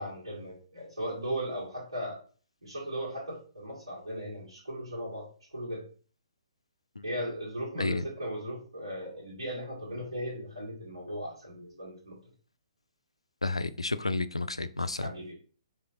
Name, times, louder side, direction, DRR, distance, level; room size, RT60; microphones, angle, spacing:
voice 1, 0.0-2.2 2.6-5.8 7.0-12.2 15.0-15.3, equal, 80° right, -7 dB, 1.8 m, -37 dB
voice 2, 13.4-15.1, left 3 dB, 85° left, 13 dB, 0.3 m, -31 dB
4.3 x 3.3 x 3.7 m, 0.41 s
figure-of-eight pair, 125°, 3 cm